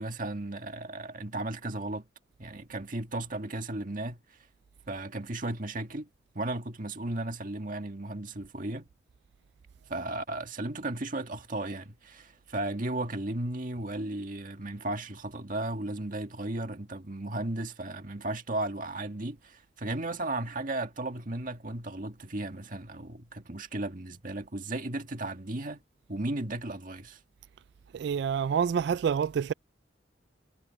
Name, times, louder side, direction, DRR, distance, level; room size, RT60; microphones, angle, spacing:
voice 1, 0.0-2.1 2.4-4.4 4.9-6.1 6.4-8.9 9.9-25.8 26.1-27.2, right 2 dB, 45° right, 1.9 m, -35 dB
voice 2, 27.9-29.5, right 7 dB, 65° right, 0.3 m, -27 dB
head